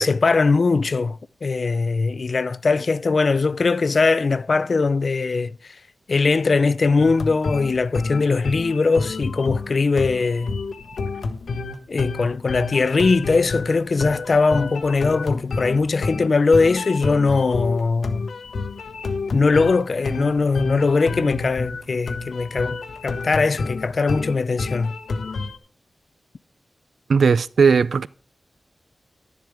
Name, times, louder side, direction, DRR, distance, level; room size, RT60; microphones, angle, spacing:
voice 1, 0.0-5.8 6.1-10.6 11.9-18.3 19.3-22.8 23.0-25.0, left 4 dB, 55° left, 0.4 m, -20 dB
sound 1, 7.0-25.6, left 3 dB, 90° left, 1.0 m, -29 dB
voice 2, 27.1-28.1, right 5 dB, 85° right, 0.4 m, -17 dB
12.0 x 10.5 x 3.6 m
wide cardioid pair, 125°, 0 cm